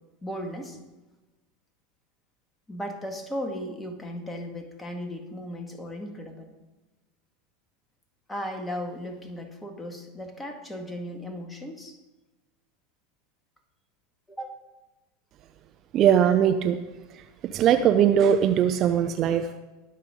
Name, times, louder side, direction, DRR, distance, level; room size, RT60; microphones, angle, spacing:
voice 1, 0.2-0.8 2.7-6.5 8.3-12.0 14.3-14.6, equal, 10° left, 4 dB, 2.0 m, -36 dB
voice 2, 15.9-16.8 17.4-19.6, right 9 dB, 40° right, 8 dB, 0.7 m, -20 dB
21.5 x 7.6 x 3.8 m, 1.1 s
figure-of-eight pair, 80°, 0 cm